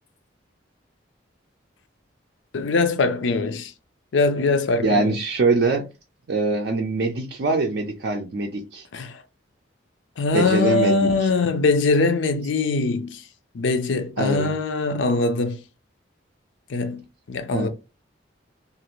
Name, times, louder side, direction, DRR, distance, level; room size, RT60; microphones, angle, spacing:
voice 1, 2.5-3.7 4.1-5.2 8.9-9.2 10.2-13.2 13.5-15.6 16.7-17.7, left 3 dB, 75° left, 0.5 m, -22 dB
voice 2, 4.8-5.9 6.3-8.9 10.3-11.3 14.2-14.6 17.5-17.7, right 3 dB, 55° right, 0.4 m, -23 dB
2.5 x 2.4 x 3.0 m
head